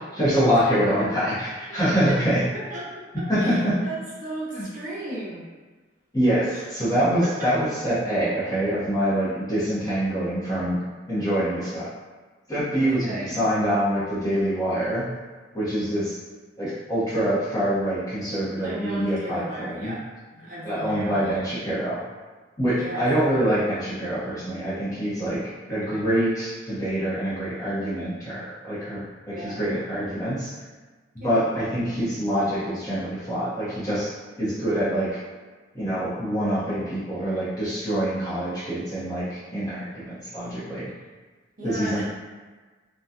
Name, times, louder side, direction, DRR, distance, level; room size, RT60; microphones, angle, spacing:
voice 1, 0.1-2.4 3.3-3.8 4.5-4.7 6.1-10.8 11.1-11.9 12.5-15.1 15.5-16.2 16.6-20.0 20.6-22.0 22.6-25.4 25.7-30.6 31.1-35.2 35.7-40.9 41.6-42.0, equal, 20° left, -11 dB, 0.9 m, -25 dB
voice 2, 1.7-2.2 2.5-5.5 6.5-6.7 7.2-7.5 9.1-9.3 12.7-13.4 18.6-20.0 20.3-21.4 22.8-23.1 25.7-26.1 29.3-29.6 31.2-31.4 41.6-42.0, right 1 dB, 45° right, -7 dB, 0.7 m, -36 dB
2.7 x 2.3 x 2.4 m, 1.3 s
head